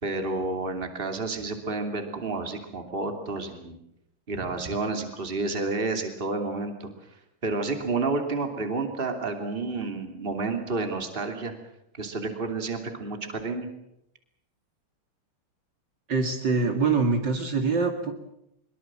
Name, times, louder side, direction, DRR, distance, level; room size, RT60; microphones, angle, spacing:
voice 1, 0.0-3.8 4.3-6.9 7.4-11.5 12.0-13.7, right 3 dB, 25° right, 5 dB, 2.9 m, -30 dB
voice 2, 16.1-18.1, right 4 dB, 55° right, 4 dB, 2.9 m, -24 dB
23.5 x 22.5 x 7.5 m, 0.80 s
omnidirectional pair, 2.4 m